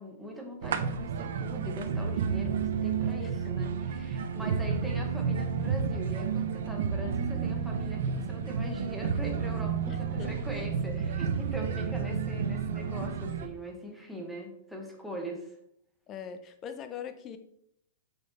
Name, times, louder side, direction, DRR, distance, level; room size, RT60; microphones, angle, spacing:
voice 1, 0.0-15.6, equal, ahead, 1 dB, 1.1 m, -41 dB
sound 1, 0.6-13.5, right 6 dB, 65° right, 0.7 m, -31 dB
voice 2, 4.4-4.7 9.9-10.4 12.1-12.2 16.1-17.4, left 7 dB, 20° left, 9 dB, 0.6 m, -42 dB
6.6 x 5.8 x 4.2 m, 0.73 s
supercardioid pair, 170°, 0 cm